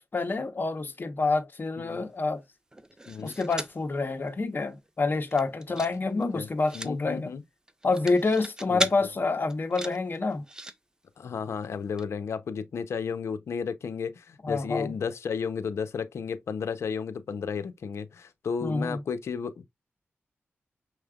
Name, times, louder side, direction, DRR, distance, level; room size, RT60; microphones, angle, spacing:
voice 1, 0.0-2.4 3.2-7.3 7.8-10.4 14.4-14.9 18.6-19.0, left 3 dB, 45° left, 1.1 m, -28 dB
sound 1, 2.7-3.8 4.3-4.4 4.6-4.9 5.2-6.0 6.2-6.9 7.7-9.0 9.5-10.7 11.6-11.7 12.0-12.1, right 1 dB, 15° right, 0.6 m, -36 dB
voice 2, 6.1-6.5 6.7-7.4 8.7-9.1 11.2-19.6, left 6 dB, 85° left, 0.7 m, -33 dB
5.7 x 3.2 x 2.4 m
cardioid pair, 65°, 5 cm